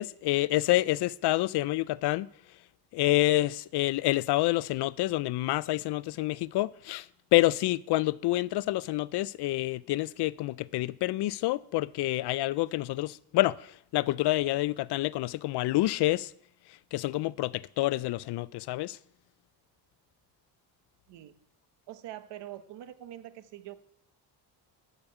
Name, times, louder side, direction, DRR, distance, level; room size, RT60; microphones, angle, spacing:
voice 1, 0.0-2.3 2.9-7.1 7.3-13.7 13.9-16.3 16.9-19.0, left 17 dB, 70° left, 0.5 m, -28 dB
voice 2, 21.1-21.4 21.9-23.7, right 13 dB, 75° right, 1.1 m, -44 dB
12.0 x 5.1 x 7.2 m
cardioid pair, 115°, 42 cm